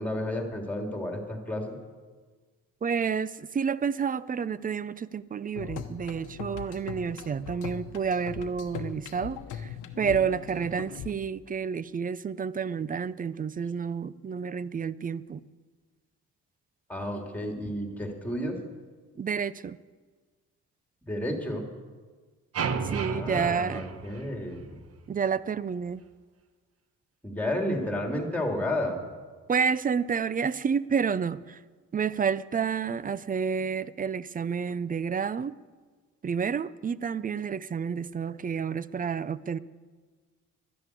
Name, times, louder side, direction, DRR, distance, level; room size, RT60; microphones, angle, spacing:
voice 1, 0.0-1.8 16.9-18.6 21.0-21.7 23.1-24.8 27.2-29.0, left 1 dB, 5° left, 2 dB, 3.0 m, -31 dB
voice 2, 2.8-15.4 19.2-19.8 22.8-23.8 25.1-26.0 29.5-31.6 31.9-35.5 36.2-39.6, right 6 dB, 30° right, 18 dB, 0.5 m, -30 dB
sound 1, 5.6-11.1, left 8 dB, 85° left, 1.1 m, -40 dB
sound 2, 22.5-24.8, right 5 dB, 50° right, 1.1 m, -33 dB
12.0 x 11.0 x 8.4 m, 1.4 s
cardioid pair, 90°, 30 cm